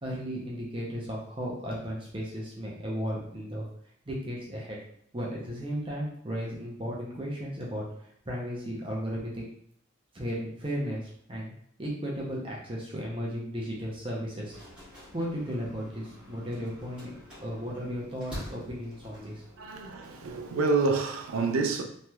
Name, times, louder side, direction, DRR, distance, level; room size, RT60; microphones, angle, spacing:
voice 1, 0.0-3.7 4.1-4.8 5.1-9.5 10.1-14.6 15.1-17.1 17.4-19.4, equal, 25° right, 0.6 m, -35 dB
sound 1, 14.5-20.4, equal, 5° right, 1.3 m, -47 dB
voice 2, 19.6-21.8, right 4 dB, 85° right, 0.4 m, -28 dB
3.1 x 2.9 x 2.3 m
head